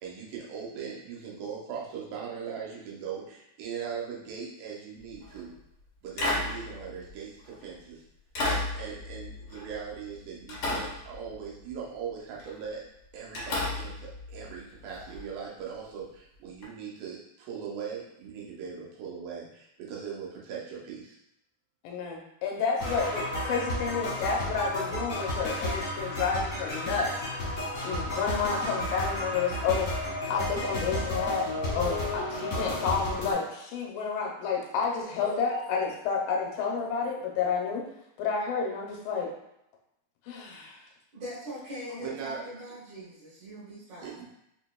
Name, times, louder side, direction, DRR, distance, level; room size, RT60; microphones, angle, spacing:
voice 1, 0.0-5.5 6.0-8.0 8.4-12.8 13.1-21.2 34.9-35.2 35.5-35.6 42.0-42.5 44.0-44.2, right 6 dB, 85° right, -4 dB, 2.6 m, -40 dB
sound 1, 5.1-5.4 6.2-7.7 8.3-10.2 10.5-11.7 12.4-12.6 13.3-15.2 16.6-16.7, left 2 dB, 65° left, 1.4 m, -33 dB
voice 2, 21.8-27.1 27.4-29.9 30.3-31.5 31.7-37.9 38.2-39.3 40.3-40.8 41.9-42.0, left 5 dB, 80° left, -1 dB, 2.2 m, -30 dB
sound 2, 22.8-33.3, left 1 dB, 45° left, 1.1 m, -32 dB
voice 3, 41.1-44.2, equal, 65° right, -9 dB, 2.2 m, -41 dB
5.2 x 2.8 x 2.2 m, 0.81 s
omnidirectional pair, 4.0 m